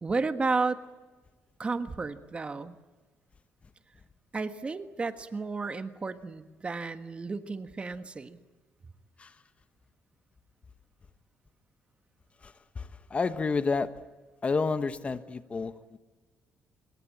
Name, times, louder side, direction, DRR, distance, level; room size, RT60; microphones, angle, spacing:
voice 1, 0.0-0.8 1.6-2.8 4.3-8.4, right 4 dB, 25° right, 1.5 m, -32 dB
voice 2, 12.4-14.0 14.4-16.0, left 4 dB, 30° left, 1.1 m, -30 dB
26.0 x 22.5 x 8.6 m
cardioid pair, 110°, 4 cm